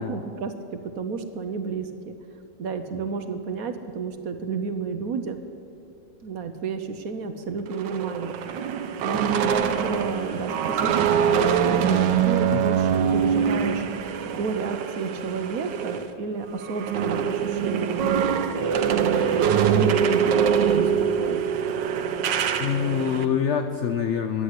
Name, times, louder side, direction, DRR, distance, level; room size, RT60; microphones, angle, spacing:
voice 1, 0.0-2.2 2.6-5.4 6.2-8.4 9.0-13.8 14.4-18.4 18.9-21.4, right 5 dB, 60° right, 8 dB, 1.1 m, -31 dB
sound 1, 7.7-16.1 16.4-23.2, right 7 dB, 85° right, 1.4 m, -24 dB
voice 2, 22.6-24.4, left 8 dB, 80° left, 7 dB, 0.6 m, -25 dB
11.0 x 7.7 x 9.7 m, 2.8 s
omnidirectional pair, 1.9 m